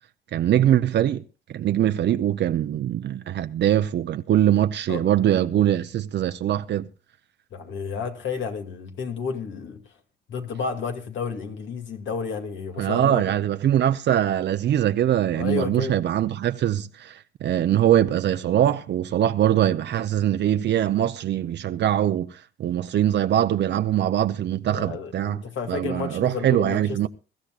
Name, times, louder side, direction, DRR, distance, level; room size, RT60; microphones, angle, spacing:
voice 1, 0.3-1.2 1.5-6.9 12.8-25.4 25.7-27.1, right 11 dB, 60° right, 0.7 m, -22 dB
voice 2, 7.5-9.8 10.3-13.3 15.4-15.9 24.7-27.1, left 6 dB, 70° left, 2.4 m, -31 dB
23.0 x 13.0 x 2.4 m
cardioid pair, 90°, 20 cm